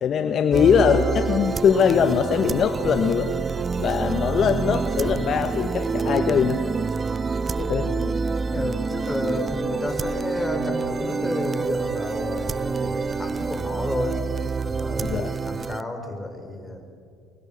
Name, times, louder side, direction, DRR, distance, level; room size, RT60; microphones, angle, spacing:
voice 1, 0.0-3.3 3.8-6.6 7.6-7.9 15.0-15.3, left 7 dB, 50° left, 8 dB, 1.3 m, -21 dB
sound 1, 0.5-15.8, right 5 dB, 30° right, 0.5 m, -27 dB
voice 2, 8.5-14.2 14.6-16.9, left 2 dB, 15° left, 5 dB, 4.7 m, -31 dB
25.0 x 23.0 x 7.3 m, 2.3 s
hypercardioid pair, 70°, 0 cm